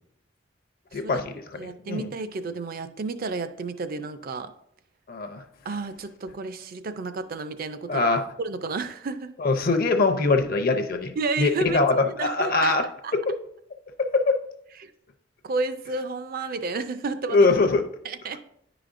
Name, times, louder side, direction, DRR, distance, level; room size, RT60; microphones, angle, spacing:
voice 1, 0.9-1.3 1.6-2.1 5.1-5.4 7.9-8.2 9.4-12.8 14.0-14.4 17.3-17.8, left 3 dB, 50° left, 7 dB, 0.6 m, -22 dB
voice 2, 1.5-4.5 5.6-8.0 8.4-9.3 11.2-11.8 12.2-12.8 13.0-13.1 14.8-14.9 15.4-17.5 18.0-18.4, right 3 dB, 50° right, 11 dB, 0.4 m, -31 dB
9.9 x 5.0 x 2.5 m, 0.74 s
head